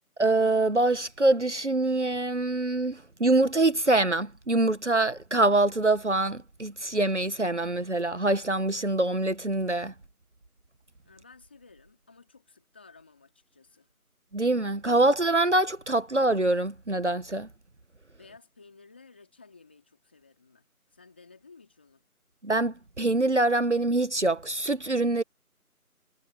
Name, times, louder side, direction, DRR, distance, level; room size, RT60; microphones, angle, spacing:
voice 1, 0.2-9.9 14.3-17.5 22.4-25.2, right 2 dB, 50° right, 1.5 m, -25 dB
voice 2, 11.0-13.9 18.2-20.6 20.9-22.0, left 4 dB, 5° left, 2.9 m, -55 dB
figure-of-eight pair, 175°, 45 cm